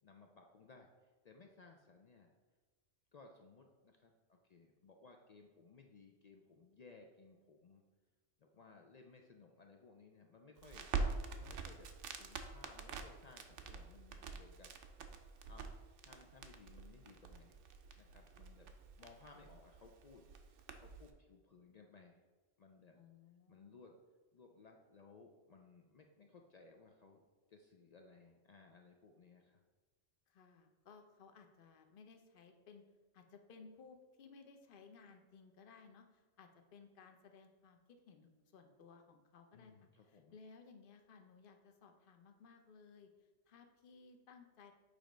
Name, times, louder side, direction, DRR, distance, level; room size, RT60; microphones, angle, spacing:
voice 1, 0.0-2.3 3.1-7.8 8.4-10.9 11.4-14.7 15.4-15.7 16.0-17.6 18.0-18.7 19.0-20.3 20.8-22.2 22.6-23.0 23.5-24.0 24.3-27.2 27.5-29.6 39.5-40.3, left 4 dB, 75° left, 2 dB, 0.3 m, -61 dB
Crackle, 10.6-21.1, right 4 dB, 75° right, 0.9 m, -45 dB
voice 2, 22.9-23.7 30.3-32.8 33.1-43.1 43.5-44.7, left 5 dB, 55° left, 5 dB, 0.8 m, -60 dB
6.7 x 3.1 x 5.0 m, 1.3 s
omnidirectional pair, 1.3 m